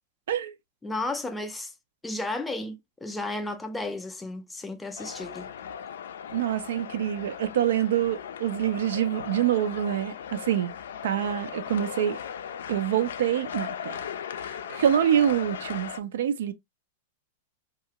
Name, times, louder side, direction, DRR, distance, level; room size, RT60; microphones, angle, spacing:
voice 1, 0.8-1.7 2.0-5.5, left 2 dB, 5° left, 0.3 m, -33 dB
sound 1, 5.0-16.0, left 8 dB, 85° left, 0.4 m, -38 dB
voice 2, 6.3-10.7 11.0-12.2 12.7-14.0 14.7-16.5, right 10 dB, 75° right, 0.4 m, -26 dB
2.7 x 2.4 x 2.8 m
supercardioid pair, 160°, 0 cm